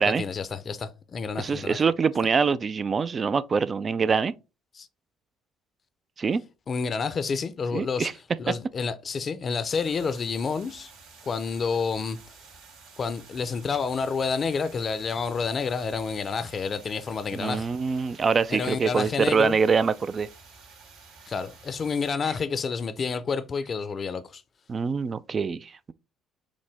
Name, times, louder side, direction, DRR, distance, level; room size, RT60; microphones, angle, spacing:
voice 1, 0.0-1.8 4.7-4.9 6.7-8.1 8.4-10.9 11.2-12.2 13.0-17.7 18.5-19.6 21.3-24.4, left 5 dB, 40° left, 0.5 m, -29 dB
voice 2, 1.4-4.3 6.2-6.4 7.7-8.1 17.3-20.3 22.2-22.3 24.7-25.9, right 5 dB, 40° right, 0.3 m, -24 dB
sound 1, 9.7-22.1, right 4 dB, 85° right, 2.1 m, -51 dB
6.1 x 2.1 x 3.3 m
supercardioid pair, 80°, 0 cm